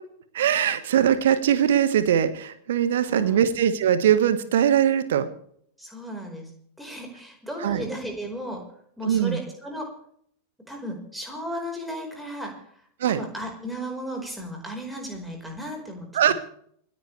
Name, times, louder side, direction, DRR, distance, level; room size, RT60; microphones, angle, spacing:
voice 1, 0.3-5.3 7.6-7.8 9.0-9.4 13.0-13.2 16.1-16.3, right 9 dB, 60° right, 12 dB, 1.5 m, -21 dB
voice 2, 3.0-3.4 5.8-6.5 6.8-8.6 9.0-9.9 10.7-12.7 13.0-16.3, equal, ahead, 1 dB, 4.9 m, -35 dB
28.0 x 9.9 x 3.4 m, 0.64 s
figure-of-eight pair, 90°, 0 cm